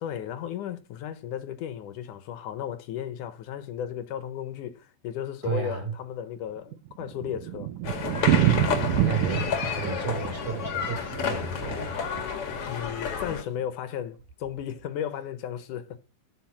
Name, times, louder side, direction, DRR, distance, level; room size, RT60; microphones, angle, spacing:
voice 1, 0.0-7.7 9.1-9.2 12.7-16.1, left 9 dB, 65° left, 2.2 m, -35 dB
voice 2, 5.4-5.9 8.3-12.0, right 6 dB, 50° right, 5.7 m, -32 dB
Thunder, 6.4-12.6 12.9-13.0 13.3-13.4 13.6-13.7 14.3-14.6, right 12 dB, 70° right, 2.2 m, -28 dB
sound 1, 7.8-13.4, left 6 dB, 45° left, 2.3 m, -30 dB
12.5 x 8.0 x 6.0 m
omnidirectional pair, 4.3 m